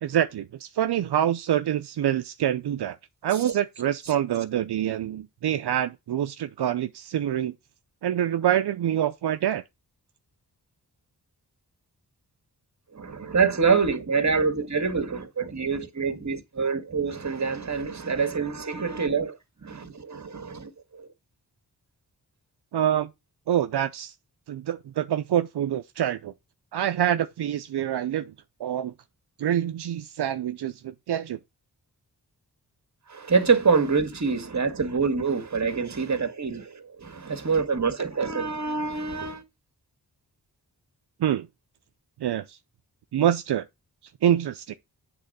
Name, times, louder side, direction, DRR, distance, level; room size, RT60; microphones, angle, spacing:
voice 1, 0.0-3.0 3.2-7.5 8.0-9.6 22.7-23.1 23.5-24.1 24.5-26.3 26.7-28.3 28.6-28.9 29.4-31.4 41.2-41.5 42.2-42.6 43.1-43.6 44.2-44.7, right 10 dB, 80° right, 0.6 m, -26 dB
voice 2, 12.9-21.1 33.1-39.4, right 5 dB, 45° right, 1.8 m, -26 dB
8.1 x 3.7 x 6.7 m
cardioid pair, 60°, 39 cm